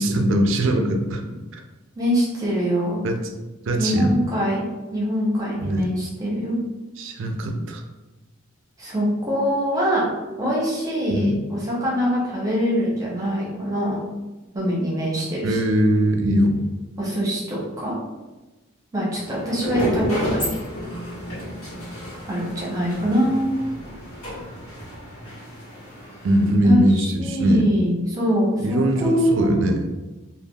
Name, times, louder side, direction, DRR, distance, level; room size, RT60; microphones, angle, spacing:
voice 1, 0.0-1.6 3.0-3.2 3.7-4.2 5.6-5.9 7.0-7.8 11.1-11.3 15.4-16.6 26.2-27.6 28.6-29.8, right 1 dB, 60° right, 4 dB, 0.3 m, -21 dB
voice 2, 2.0-3.0 3.8-4.7 4.9-6.6 8.8-10.1 10.4-14.0 14.5-15.6 17.0-17.9 18.9-20.6 22.2-23.6 25.3-25.4 26.6-29.6, equal, 15° right, -5 dB, 0.7 m, -23 dB
sound 1, 19.1-26.5, equal, 85° left, 1.0 m, -31 dB
3.4 x 2.2 x 2.3 m, 1.1 s
head